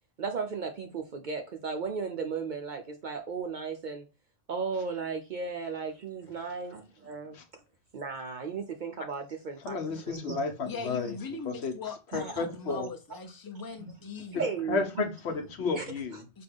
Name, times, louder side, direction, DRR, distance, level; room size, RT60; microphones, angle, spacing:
voice 1, 0.2-4.1 4.5-6.8 7.1-7.4 7.9-10.4 12.1-12.3 12.7-12.9 13.8-13.9 14.4-15.1 15.7-15.8, right 5 dB, 55° right, 0.6 m, -35 dB
voice 2, 9.6-11.2 11.4-11.7 12.1-12.9 14.3-14.4 14.7-16.2, left 4 dB, 70° left, 1.0 m, -32 dB
voice 3, 10.6-14.4 16.3-16.4, left 4 dB, 25° left, 0.5 m, -40 dB
5.1 x 2.3 x 3.4 m
omnidirectional pair, 1.2 m